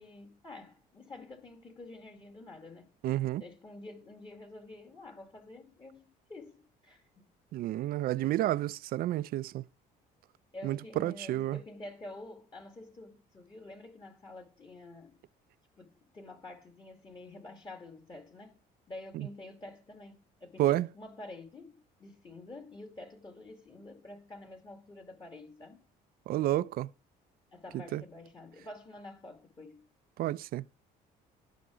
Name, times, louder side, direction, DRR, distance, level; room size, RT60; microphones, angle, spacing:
voice 1, 0.0-2.9 3.4-7.3 10.5-15.2 15.8-18.6 18.9-25.8 27.5-29.8, left 2 dB, 25° left, 2.1 m, -48 dB
voice 2, 3.0-3.4 7.5-9.6 10.6-11.6 19.1-19.3 20.6-20.9 26.3-26.9 27.9-28.0 30.2-30.6, right 14 dB, 60° right, 0.4 m, -30 dB
13.5 x 5.9 x 5.0 m
cardioid pair, 110°, 17 cm